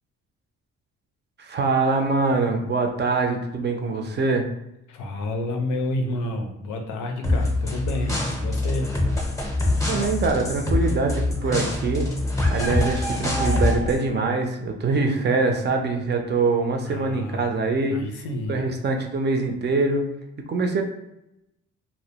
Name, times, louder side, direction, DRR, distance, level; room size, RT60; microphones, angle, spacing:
voice 1, 1.4-4.5 9.8-12.1 12.5-18.0 18.5-20.0 20.5-20.8, right 3 dB, 35° right, 4 dB, 0.4 m, -24 dB
voice 2, 4.9-8.9 16.9-17.5 17.9-18.6, left 1 dB, 85° left, 4 dB, 0.5 m, -30 dB
sound 1, 7.2-14.0, left 2 dB, 10° left, 0.6 m, -24 dB
2.1 x 2.1 x 2.8 m, 0.86 s
cardioid pair, 90°, 30 cm